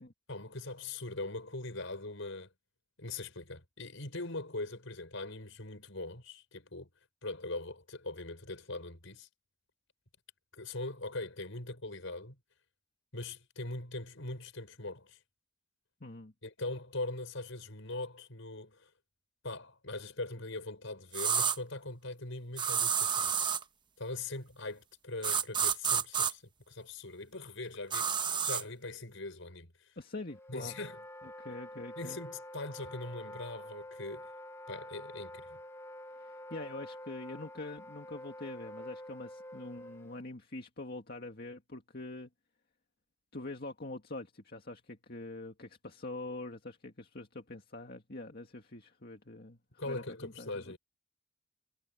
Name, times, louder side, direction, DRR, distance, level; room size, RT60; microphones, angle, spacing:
voice 1, 0.3-2.5 3.0-6.9 7.2-9.3 10.5-12.4 13.1-15.2 16.4-18.9 19.4-23.5 24.0-29.7 30.5-31.0 32.0-34.3 34.7-35.6 49.8-50.8, left 2 dB, 65° left, 6.1 m, -41 dB
voice 2, 16.0-16.3 30.0-30.7 31.2-32.2 36.2-42.3 43.3-49.6 49.8-50.8, left 2 dB, 50° left, 2.0 m, -44 dB
sound 1, 21.1-21.6 22.6-23.6 25.2-26.3 27.9-28.6, right 7 dB, 20° right, 1.0 m, -29 dB
Wind instrument woodwind instrument, 30.3-40.2, left 1 dB, 10° left, 1.0 m, -47 dB
head